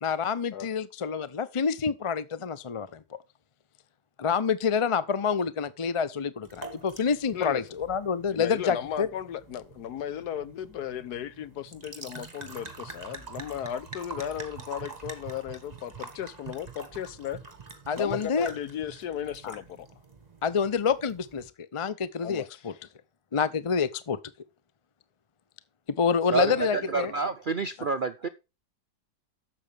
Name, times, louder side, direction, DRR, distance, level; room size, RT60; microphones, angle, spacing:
voice 1, 0.0-3.0 4.2-9.1 17.9-18.5 19.4-19.5 20.4-22.7 23.3-24.2 26.0-27.1, left 6 dB, 50° left, 0.3 m, -27 dB
sound 1, 6.4-21.5, right 4 dB, 25° right, 1.8 m, -45 dB
voice 2, 8.3-17.4 18.0-19.9 22.2-22.6, left 10 dB, 75° left, 1.4 m, -35 dB
voice 3, 26.3-28.3, right 4 dB, 55° right, 0.5 m, -28 dB
12.0 x 7.8 x 3.4 m
omnidirectional pair, 1.7 m